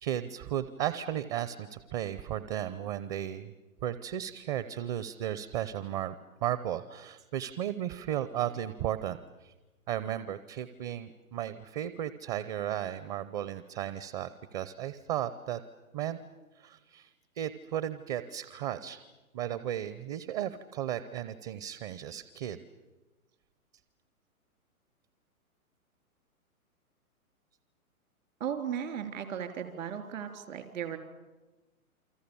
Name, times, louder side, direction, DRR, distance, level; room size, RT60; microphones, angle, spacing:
voice 1, 0.0-3.5 3.8-6.1 6.4-9.5 9.9-15.6 15.9-16.2 16.6-17.1 17.4-19.0 19.3-22.6, right 11 dB, 30° right, 14 dB, 0.8 m, -35 dB
voice 2, 28.4-31.0, right 8 dB, 65° right, 7 dB, 3.7 m, -36 dB
29.0 x 25.0 x 7.1 m, 1.1 s
hypercardioid pair, 130°, 44 cm